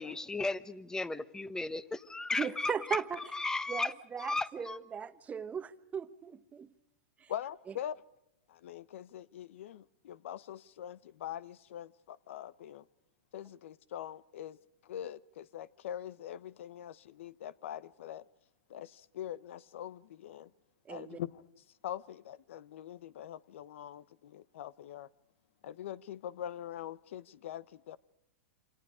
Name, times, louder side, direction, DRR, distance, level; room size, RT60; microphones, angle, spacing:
voice 1, 0.0-3.0 3.3-3.9 4.2-4.8, left 2 dB, 10° left, 1.2 m, -35 dB
voice 2, 2.4-3.2 3.7-6.7 7.2-7.3 20.9-21.2, right 7 dB, 20° right, 1.2 m, -38 dB
voice 3, 7.3-8.0 8.5-12.8 13.3-14.6 14.8-18.2 18.7-20.5 20.9-25.1 25.6-28.0, left 11 dB, 70° left, 1.0 m, -43 dB
28.0 x 26.5 x 5.1 m
hypercardioid pair, 120°, 7 cm